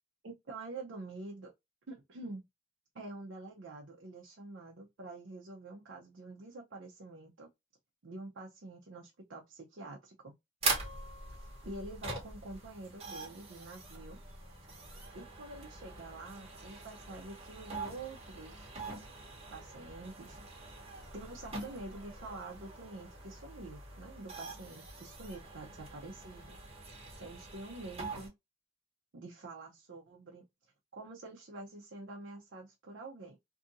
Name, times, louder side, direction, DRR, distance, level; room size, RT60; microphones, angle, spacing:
voice 1, 0.2-1.5 1.9-2.4 2.9-7.5 8.0-10.3 11.3-14.2 15.1-18.7 19.5-20.9 21.1-26.6 27.2-28.3 29.1-30.4 30.9-33.4, right 2 dB, 60° right, 0.6 m, -47 dB
sound 1, 10.6-28.3, right 3 dB, 30° right, 1.1 m, -43 dB
2.7 x 2.5 x 2.5 m
head